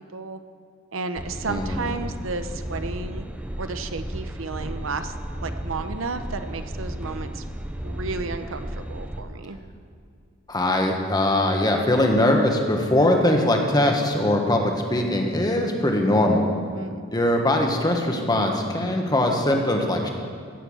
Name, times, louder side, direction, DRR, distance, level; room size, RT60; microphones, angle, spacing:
voice 1, 0.9-3.3 3.6-7.4 7.8-9.6 16.7-17.0, right 3 dB, 75° right, 9 dB, 0.8 m, -32 dB
sound 1, 1.2-9.2, right 1 dB, 5° right, 0.6 m, -34 dB
voice 2, 1.5-1.9 10.5-16.5 17.1-20.1, left 1 dB, 20° left, 2 dB, 1.4 m, -21 dB
16.5 x 7.0 x 7.2 m, 2.3 s
head